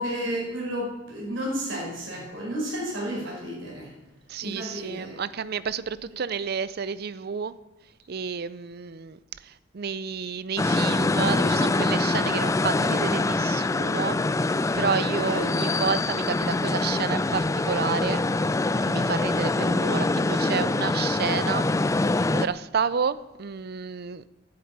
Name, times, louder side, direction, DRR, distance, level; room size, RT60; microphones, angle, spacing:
voice 1, 0.0-3.9 4.4-5.2 15.2-15.4, equal, 80° right, -3 dB, 5.8 m, -32 dB
voice 2, 4.3-7.5 8.1-14.2 14.7-18.2 18.9-21.7 22.0-24.2, right 6 dB, 55° right, 16 dB, 0.5 m, -30 dB
sound 1, 10.6-22.5, left 2 dB, 15° left, 0.4 m, -24 dB
10.5 x 8.8 x 8.7 m, 1.0 s
head